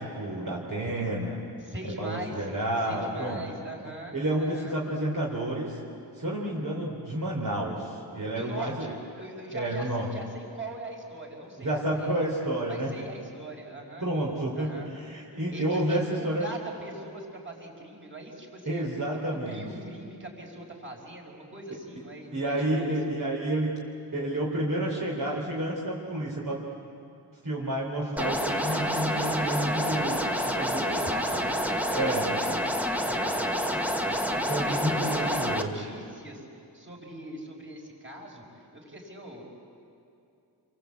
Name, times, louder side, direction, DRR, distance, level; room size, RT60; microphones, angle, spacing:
voice 1, 0.0-1.4 2.0-3.4 4.1-5.8 6.2-8.7 9.5-10.1 11.6-12.9 14.0-16.5 18.7-19.6 22.3-23.8 24.1-26.7 27.4-31.1 31.9-32.2 34.5-35.7, right 1 dB, 50° right, -4 dB, 4.0 m, -30 dB
voice 2, 1.6-2.5 2.9-4.8 8.3-12.2 12.7-14.1 14.5-14.9 15.5-18.9 19.3-23.0 30.9-36.5 36.7-39.4, right 1 dB, 30° right, 0 dB, 5.2 m, -41 dB
sound 1, 28.2-35.6, equal, 5° right, 1.5 m, -28 dB
29.5 x 23.5 x 8.4 m, 2.6 s
wide cardioid pair, 100°, 41 cm